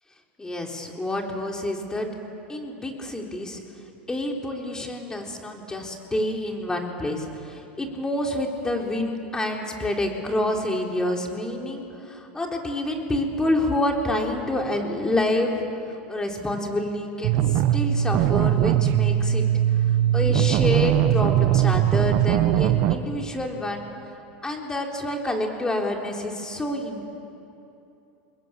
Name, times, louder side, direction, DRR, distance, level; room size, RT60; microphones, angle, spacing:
voice 1, 0.4-2.1 2.5-3.6 4.1-19.5 19.9-23.9 24.4-27.1, left 1 dB, 15° left, 1 dB, 4.0 m, -28 dB
sound 1, 17.2-23.0, right 11 dB, 55° right, 1.3 m, -20 dB
29.5 x 21.0 x 8.7 m, 2.8 s
supercardioid pair, 110°, 5 cm